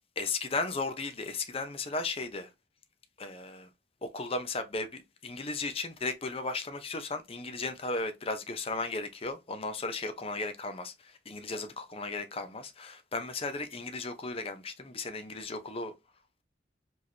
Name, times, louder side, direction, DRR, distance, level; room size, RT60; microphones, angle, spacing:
voice 1, 0.2-2.5 3.2-3.7 4.0-10.9 11.3-15.9, left 3 dB, 35° left, 0.7 m, -35 dB
4.9 x 3.0 x 2.8 m
head